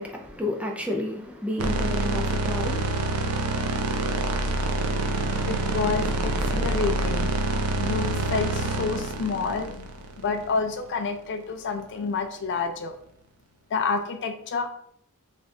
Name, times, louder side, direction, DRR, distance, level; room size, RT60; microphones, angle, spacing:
voice 1, 0.0-3.9, left 1 dB, 5° right, 0.5 m, -32 dB
sound 1, 1.6-10.8, right 2 dB, 75° right, 0.6 m, -27 dB
voice 2, 5.5-12.9 13.7-14.8, left 4 dB, 55° left, 0.4 m, -29 dB
3.4 x 2.4 x 4.2 m
head